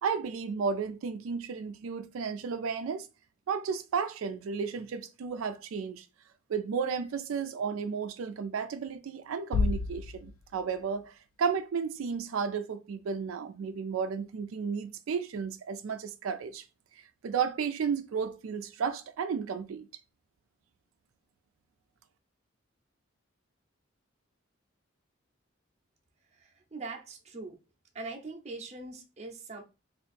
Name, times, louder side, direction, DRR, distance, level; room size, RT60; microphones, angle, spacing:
voice 1, 0.0-3.1 3.5-6.1 6.5-16.6 17.0-19.9, right 6 dB, 85° right, 0.4 m, -33 dB
Bass drum, 9.5-11.2, left 3 dB, 85° left, 0.3 m, -32 dB
voice 2, 26.3-27.6 27.9-29.6, right 3 dB, 35° right, 0.6 m, -42 dB
2.9 x 2.5 x 4.1 m
head